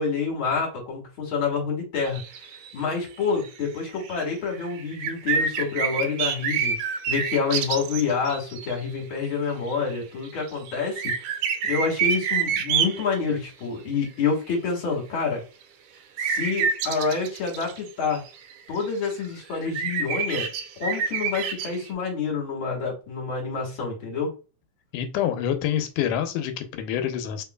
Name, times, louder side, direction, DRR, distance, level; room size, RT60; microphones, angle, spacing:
voice 1, 0.0-2.2 2.7-11.1 11.6-15.4 16.2-18.2 18.7-20.5 20.8-24.3, left 5 dB, 45° left, 1 dB, 2.3 m, -27 dB
sound 1, 2.1-2.7 3.1-3.2 3.4-3.5 3.9-4.2 4.5-8.7 9.7-10.0 10.3-13.0 16.2-18.8 19.1-19.2 19.5-21.9, right 6 dB, 80° right, 2.2 m, -27 dB
voice 2, 24.9-27.4, left 10 dB, 85° left, 8 dB, 2.3 m, -27 dB
4.7 x 3.7 x 2.2 m, 0.33 s
omnidirectional pair, 3.6 m